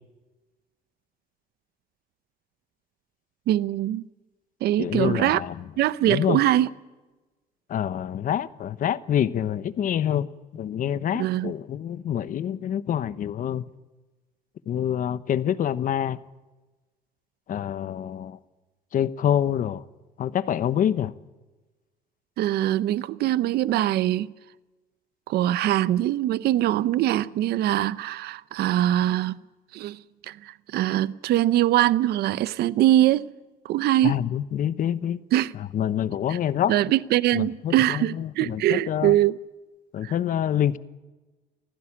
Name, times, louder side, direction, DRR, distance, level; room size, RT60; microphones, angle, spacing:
voice 1, 3.5-4.1 4.6-5.4 5.8-6.7 11.1-11.5 22.4-24.3 25.3-29.4 29.7-33.3 33.6-34.2 35.3-35.5 36.3-36.4 36.7-39.3 40.0-40.1, right 13 dB, 70° right, 0.7 m, -23 dB
voice 2, 4.8-5.6 6.0-6.4 7.7-10.3 10.5-13.6 14.7-16.2 17.5-18.4 18.9-19.8 20.2-21.1 34.0-35.2 35.5-36.8 37.3-39.2 39.9-40.8, left 10 dB, 55° left, 1.0 m, -26 dB
24.0 x 15.5 x 8.7 m
cardioid pair, 110°, 17 cm